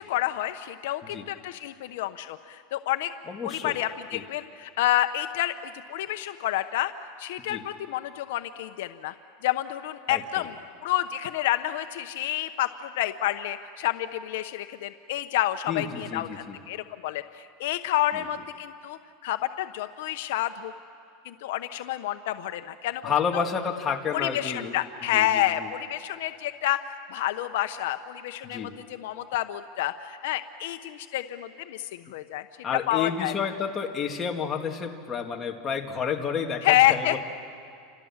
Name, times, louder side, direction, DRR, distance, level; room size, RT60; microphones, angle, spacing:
voice 1, 0.0-3.1 3.4-6.9 7.2-9.1 9.4-10.5 10.8-20.7 21.2-23.4 24.1-26.8 27.1-32.4 32.9-33.3 36.6-37.2, left 14 dB, 75° left, 9 dB, 0.9 m, -29 dB
voice 2, 3.3-3.8 4.1-4.2 7.5-7.6 10.1-10.5 15.7-16.6 18.1-18.3 23.0-24.8 25.1-25.7 28.4-28.7 32.6-37.2, left 6 dB, 20° left, 1 dB, 2.2 m, -30 dB
29.5 x 27.0 x 7.3 m, 2.3 s
supercardioid pair, 150°, 0 cm